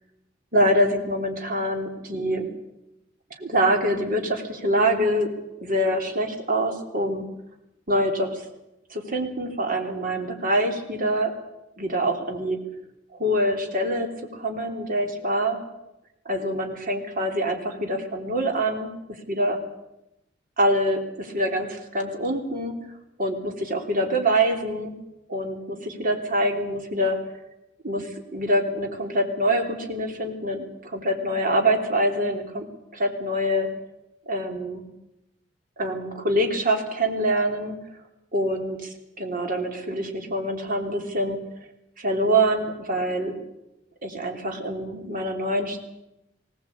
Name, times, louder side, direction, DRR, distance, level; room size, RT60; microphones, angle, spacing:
voice 1, 0.5-2.5 3.4-5.3 5.6-7.3 7.9-8.4 8.9-11.3 11.8-12.6 13.1-15.6 16.2-19.6 20.6-22.8 23.2-24.9 25.3-27.2 27.8-32.7 32.9-33.7 34.3-34.8 35.8-37.8 38.3-38.8 39.2-41.4 42.0-43.3 44.0-45.8, right 1 dB, 45° right, 3 dB, 3.4 m, -25 dB
20.5 x 17.5 x 8.6 m, 0.91 s
head